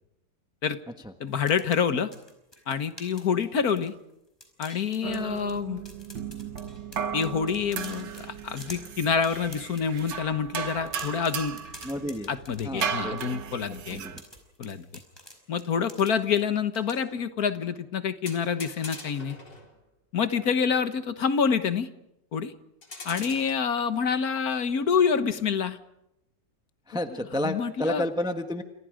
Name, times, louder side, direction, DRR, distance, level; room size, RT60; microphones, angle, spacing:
voice 1, 1.2-2.1 2.7-3.9 4.6-5.8 7.1-11.6 12.3-14.0 14.6-14.9 15.5-19.4 20.1-21.9 22.3-22.5 23.0-25.8 27.3-28.0, left 6 dB, 60° left, 11 dB, 1.7 m, -27 dB
sound 1, 1.3-4.1 4.4-5.6 5.9-10.2 10.6-13.3 13.9-16.4 16.7-17.0, left 1 dB, 15° left, 5.0 m, -48 dB
sound 2, 5.0-14.2, right 7 dB, 85° right, 2.0 m, -36 dB
voice 2, 11.8-12.3 12.6-13.4 13.9-14.2 26.9-28.6, left 1 dB, 5° right, 7 dB, 1.1 m, -31 dB
sound 3, 18.3-19.7 22.8-23.5, left 3 dB, 80° left, 4.6 m, -42 dB
29.5 x 27.0 x 5.1 m, 0.85 s
omnidirectional pair, 1.9 m